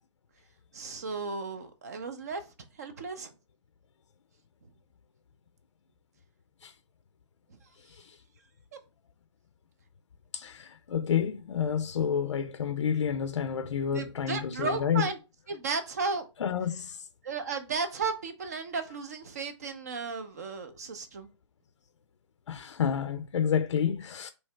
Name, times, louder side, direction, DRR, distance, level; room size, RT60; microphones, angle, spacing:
voice 1, 0.7-2.5 2.8-3.3 13.9-15.2 15.5-16.3 17.2-21.3, right 4 dB, 35° right, 0.5 m, -34 dB
voice 2, 10.3-15.1 16.4-17.0 22.5-24.3, left 8 dB, 75° left, 0.5 m, -29 dB
3.1 x 2.8 x 4.3 m
hypercardioid pair, 170°, 16 cm